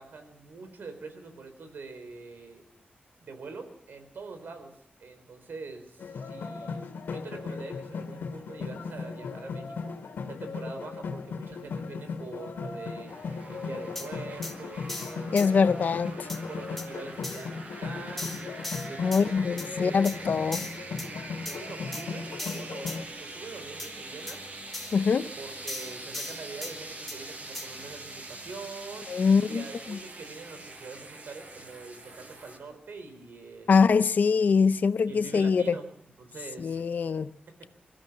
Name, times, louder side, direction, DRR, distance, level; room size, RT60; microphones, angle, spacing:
voice 1, 0.0-2.6 3.2-13.1 13.5-15.7 16.5-18.3 18.8-20.2 21.4-22.9 23.2-24.4 25.4-29.1 29.4-34.0 35.1-36.8, right 4 dB, 70° right, 4.1 m, -44 dB
sound 1, 6.0-23.0, left 5 dB, 90° left, 2.4 m, -37 dB
sound 2, 13.1-32.6, right 2 dB, 45° right, 6.0 m, -44 dB
sound 3, 14.0-14.1 14.4-14.5 14.9-15.5 16.3-16.4 16.8-16.9 17.2-17.5 18.2-19.2 19.6-19.7 20.0-20.2 20.5-21.1 21.5-21.6 21.9-22.0 22.4-23.0 23.8-23.9 24.3-24.4 24.7-25.0 25.7-26.7 27.1-27.2 27.5-27.7, left 2 dB, 5° left, 2.3 m, -37 dB
voice 2, 15.3-16.3 19.0-20.6 24.9-25.3 29.1-30.0 33.7-35.6 36.6-37.3, left 5 dB, 55° left, 0.7 m, -23 dB
24.5 x 15.0 x 7.3 m
wide cardioid pair, 160°, 4 cm